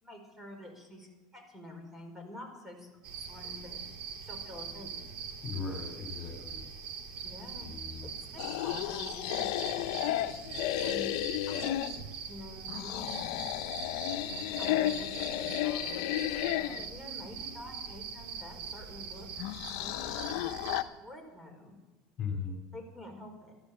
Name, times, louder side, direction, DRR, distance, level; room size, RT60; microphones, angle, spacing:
voice 1, 0.0-2.9 3.2-3.8 4.2-5.1 7.2-7.7 8.0-10.4 10.8-11.2 11.5-11.8 12.3-13.2 14.3-19.3 19.8-21.8 22.7-23.5, left 1 dB, 10° right, 3 dB, 5.0 m, -48 dB
sound 1, 3.0-20.8, right 6 dB, 55° right, 2.6 m, -43 dB
voice 2, 5.4-6.6 7.6-8.1 22.2-22.6, left 5 dB, 35° left, 4 dB, 2.7 m, -38 dB
sound 2, 8.4-12.0 12.7-16.9 19.4-20.8, left 13 dB, 75° left, 0.8 m, -33 dB
13.5 x 12.5 x 6.8 m, 1.2 s
supercardioid pair, 115°, 3 cm